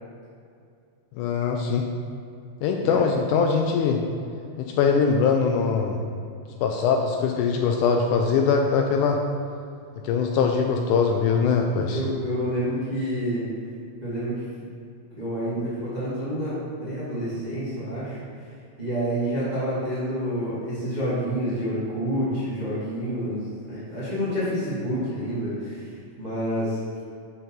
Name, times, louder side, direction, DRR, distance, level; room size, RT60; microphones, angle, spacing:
voice 1, 1.2-1.9 2.6-4.0 4.6-6.0 6.6-9.2 10.0-12.0, left 5 dB, 80° left, 2 dB, 1.9 m, -22 dB
voice 2, 11.9-13.4 14.0-14.4 15.1-18.2 18.8-25.9 26.2-26.8, equal, 35° right, -10 dB, 0.7 m, -28 dB
6.4 x 5.4 x 4.4 m, 2.5 s
omnidirectional pair, 3.9 m